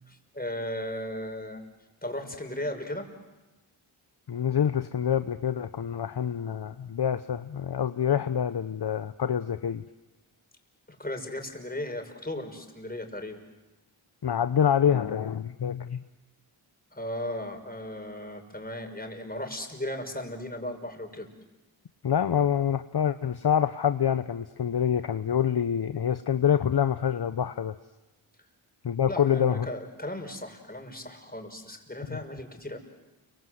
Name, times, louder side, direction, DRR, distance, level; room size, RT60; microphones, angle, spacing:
voice 1, 0.1-1.6 2.0-3.1 11.0-13.4 16.9-21.3 29.1-32.8, left 1 dB, 20° left, 5 dB, 5.8 m, -36 dB
voice 2, 4.3-9.8 14.2-16.0 22.0-27.7 28.8-29.7 32.1-32.2, left 8 dB, 50° left, 10 dB, 1.0 m, -26 dB
29.5 x 24.5 x 8.0 m, 1.1 s
cardioid pair, 45°, 50 cm